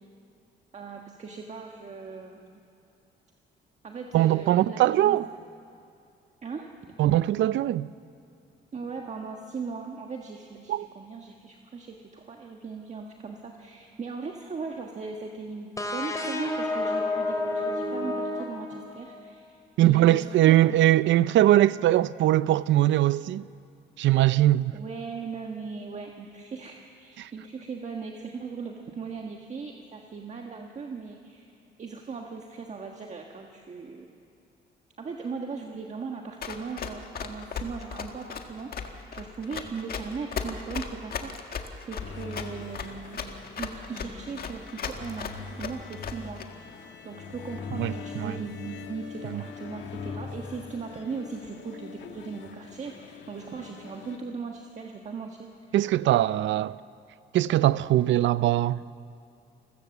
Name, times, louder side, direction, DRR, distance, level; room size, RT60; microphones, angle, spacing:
voice 1, 0.7-2.6 3.8-5.2 6.4-6.7 8.7-20.7 24.7-31.5 31.8-34.2 35.0-41.6 41.9-43.2 43.6-46.4 47.0-55.5, right 5 dB, 35° right, 1.5 m, -38 dB
voice 2, 4.1-5.3 7.0-7.9 10.7-10.9 19.8-23.4 24.0-24.7 27.2-27.3 47.8-48.3 49.2-49.4 55.7-56.8 57.3-58.8, right 14 dB, 75° right, 0.5 m, -21 dB
sound 1, 15.8-19.3, left 2 dB, 15° left, 2.6 m, -30 dB
Run, 36.4-46.4, left 6 dB, 50° left, 1.7 m, -35 dB
sound 2, 42.0-54.2, left 5 dB, 70° left, 1.6 m, -42 dB
29.0 x 15.5 x 7.1 m
cardioid pair, 115°, 20 cm